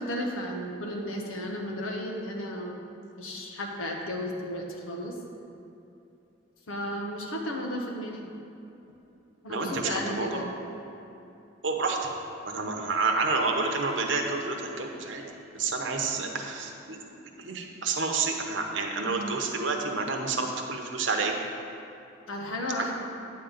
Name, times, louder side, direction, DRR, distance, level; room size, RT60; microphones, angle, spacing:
voice 1, 0.0-2.7 3.1-5.2 6.7-8.2 9.4-10.5 19.0-19.3 22.3-22.9, left 1 dB, 90° left, 0 dB, 1.2 m, -34 dB
voice 2, 9.5-10.5 11.6-12.0 12.4-15.2 15.5-17.0 17.4-21.3 22.8-22.9, right 4 dB, 65° right, 2 dB, 0.9 m, -29 dB
Bowed string instrument, 12.7-16.6, left 3 dB, 25° left, 2.2 m, -47 dB
9.6 x 3.8 x 7.1 m, 2.8 s
head